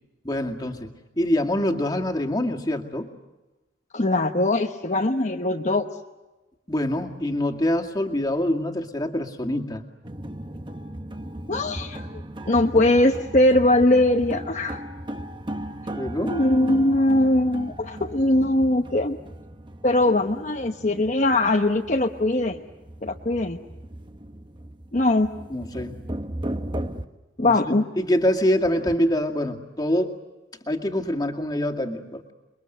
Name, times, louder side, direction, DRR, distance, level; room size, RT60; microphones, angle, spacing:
voice 1, 0.2-0.9 1.2-3.1 6.7-9.8 15.9-16.4 25.5-25.9 27.4-30.2 30.7-32.2, left 1 dB, 20° left, 2 dB, 2.2 m, -25 dB
voice 2, 3.9-5.9 11.5-14.8 16.3-19.2 19.8-22.6 23.0-23.6 24.9-25.3 27.4-27.8, left 1 dB, 40° left, 2 dB, 1.1 m, -21 dB
sound 1, 10.0-27.0, right 1 dB, 25° right, 1.1 m, -36 dB
29.5 x 22.5 x 7.9 m, 1.1 s
head